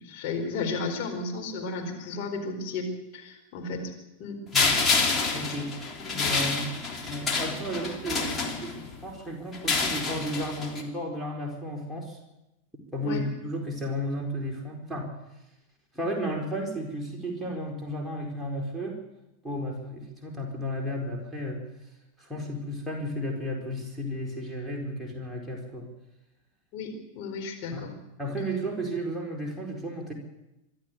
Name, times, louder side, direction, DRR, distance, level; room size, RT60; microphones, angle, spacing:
voice 1, 0.0-2.9 3.1-3.9 4.2-4.4 6.0-6.2 13.0-13.2 26.7-27.9, left 4 dB, 45° left, 2 dB, 4.5 m, -33 dB
sound 1, 4.5-9.0 9.5-10.8, left 4 dB, 20° left, 3.4 m, -28 dB
voice 2, 5.3-5.8 6.1-6.7 7.0-12.2 12.9-15.1 15.9-19.0 19.4-21.6 22.2-25.9 27.7-27.9 28.2-30.1, equal, 5° right, -1 dB, 4.5 m, -33 dB
25.0 x 12.5 x 8.5 m, 0.94 s
figure-of-eight pair, 90°, 0 cm